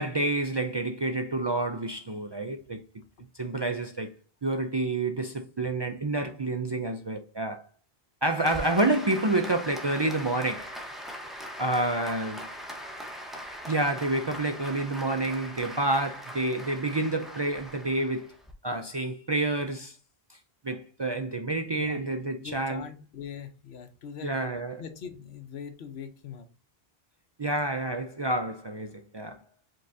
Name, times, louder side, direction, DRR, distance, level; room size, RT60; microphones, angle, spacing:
voice 1, 0.0-2.8 3.3-4.1 4.4-7.6 8.2-10.8 11.6-12.5 13.7-18.3 18.6-20.0 20.3-20.4 20.6-22.8 24.2-24.8 27.4-29.4, right 2 dB, 45° right, 0.3 m, -28 dB
Applause, 8.4-18.5, equal, ahead, 0.8 m, -41 dB
voice 2, 22.4-24.3 24.8-26.5, left 7 dB, 90° left, 1.1 m, -42 dB
5.3 x 3.8 x 2.6 m
omnidirectional pair, 1.0 m